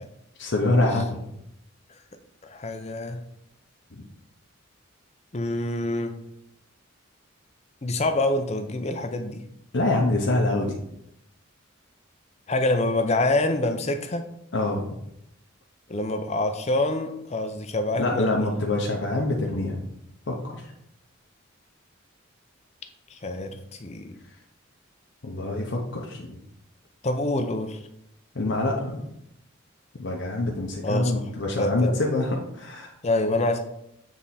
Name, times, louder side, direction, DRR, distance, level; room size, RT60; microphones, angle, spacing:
voice 1, 0.4-1.3 3.9-4.0 9.7-10.8 14.5-14.8 18.0-19.9 20.3-20.6 25.2-26.4 28.3-29.1 30.0-32.9, left 2 dB, 60° left, -1 dB, 0.8 m, -25 dB
voice 2, 2.4-3.2 5.3-6.1 7.8-9.4 12.5-14.2 15.9-18.5 23.1-24.2 27.0-27.8 30.8-31.1 31.6-31.9 33.0-33.6, left 2 dB, 35° left, 7 dB, 0.6 m, -26 dB
7.3 x 3.6 x 4.2 m, 0.78 s
head